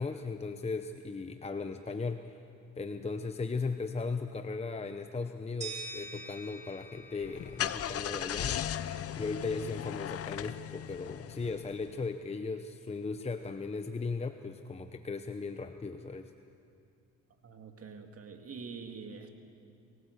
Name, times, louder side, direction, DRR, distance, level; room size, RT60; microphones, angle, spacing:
voice 1, 0.0-2.4 2.8-8.6 9.2-16.3, left 4 dB, 20° left, 8 dB, 0.8 m, -37 dB
sound 1, 5.6-8.5, right 3 dB, 25° right, 4.3 m, -45 dB
Car / Engine starting, 7.2-11.9, left 10 dB, 50° left, 0.7 m, -37 dB
voice 2, 17.4-19.3, right 5 dB, 50° right, 5 dB, 2.3 m, -45 dB
23.0 x 17.0 x 8.1 m, 2.5 s
cardioid pair, 90°, 30 cm